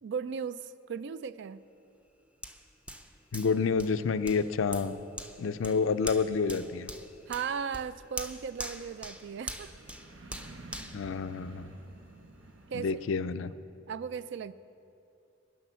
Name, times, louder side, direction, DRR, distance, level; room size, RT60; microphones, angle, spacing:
voice 1, 0.0-1.6 7.3-9.7 12.7-13.0 13.9-14.5, right 6 dB, 65° right, 16 dB, 0.3 m, -36 dB
Hands, 2.4-11.9 12.4-12.5, equal, 5° right, 0.5 m, -44 dB
voice 2, 3.3-5.0 5.4-6.9 10.9-11.7 12.7-13.5, left 5 dB, 85° left, 13 dB, 0.4 m, -29 dB
sound 1, 7.1-13.1, right 2 dB, 85° right, 1.0 m, -52 dB
10.5 x 10.0 x 6.9 m, 2.7 s
head